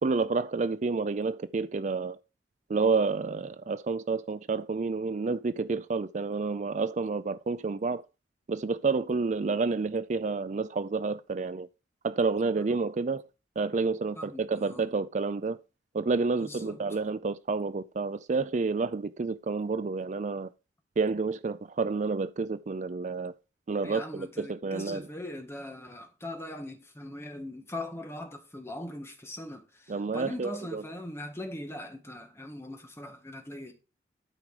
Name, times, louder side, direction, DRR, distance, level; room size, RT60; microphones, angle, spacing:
voice 1, 0.0-2.2 2.7-8.1 8.5-11.7 12.0-13.2 13.6-15.6 15.9-20.5 21.0-23.3 23.7-25.0 29.9-30.8, right 4 dB, 40° right, 0.4 m, -29 dB
voice 2, 14.1-14.8 16.4-16.8 23.8-33.7, left 1 dB, 15° left, 1.7 m, -41 dB
12.5 x 4.9 x 4.9 m
head